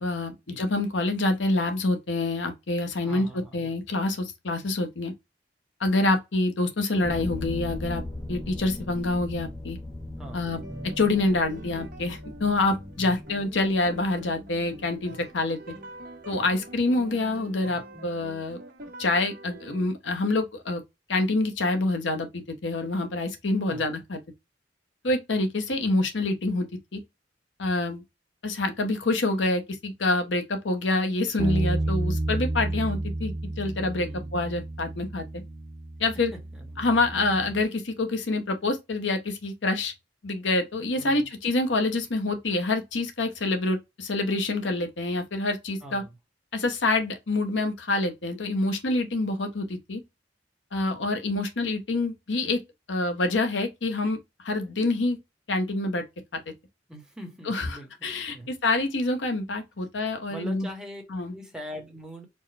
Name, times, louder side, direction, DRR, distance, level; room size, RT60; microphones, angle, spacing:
voice 1, 0.0-5.1 5.8-8.0 8.3-9.8 10.3-10.6 11.0-15.7 16.3-18.6 19.0-20.8 21.1-24.2 25.0-26.7 26.9-27.0 27.6-28.0 28.4-35.2 36.0-36.3 36.8-39.9 40.2-46.0 46.5-50.0 50.7-52.6 52.9-54.2 54.4-55.2 55.5-56.0 56.3-56.4 57.5-60.7 61.1-61.3, left 2 dB, 90° left, 0.9 m, -26 dB
voice 2, 3.0-3.7 10.2-10.5 23.7-23.9 31.8-32.0 34.0-34.3 36.3-37.0 41.0-41.3 45.8-46.2 56.9-58.5 60.3-61.0 61.3-62.3, equal, 5° right, 1.1 m, -42 dB
sound 1, 7.0-15.8, left 1 dB, 20° left, 0.6 m, -39 dB
sound 2, 10.5-19.9, right 1 dB, 50° right, 1.3 m, -44 dB
Bass guitar, 31.4-37.6, right 2 dB, 30° right, 0.4 m, -31 dB
4.4 x 2.2 x 3.3 m
head